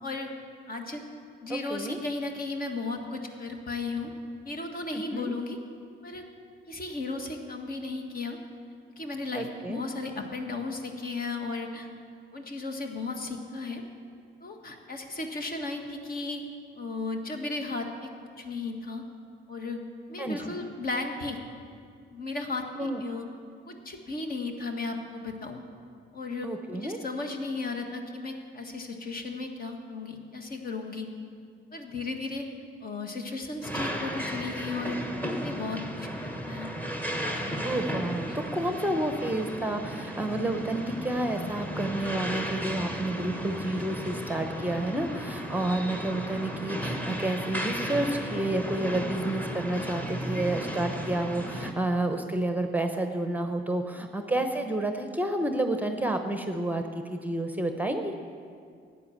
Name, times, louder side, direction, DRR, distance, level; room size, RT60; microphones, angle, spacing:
voice 1, 0.0-0.3 0.7-1.0 1.4-4.1 4.4-5.6 6.0-6.2 6.7-8.4 9.0-11.9 12.3-13.8 14.4-16.4 16.8-18.1 18.4-19.0 19.5-19.8 20.1-21.4 22.1-23.3 23.7-25.6 26.1-26.5 26.8-31.1 31.7-32.5 32.8-35.0 35.4-36.7 37.4-37.5 38.3-38.4, left 3 dB, 45° left, 4 dB, 1.7 m, -35 dB
voice 2, 1.5-2.0 4.9-5.3 9.3-9.8 20.2-20.4 22.8-23.0 26.4-27.0 37.6-56.8 57.1-58.1, right 1 dB, 10° right, 6 dB, 0.8 m, -30 dB
sound 1, 33.6-51.7, equal, 10° left, 1.3 m, -34 dB
12.5 x 9.2 x 7.3 m, 2.3 s
cardioid pair, 90°, 20 cm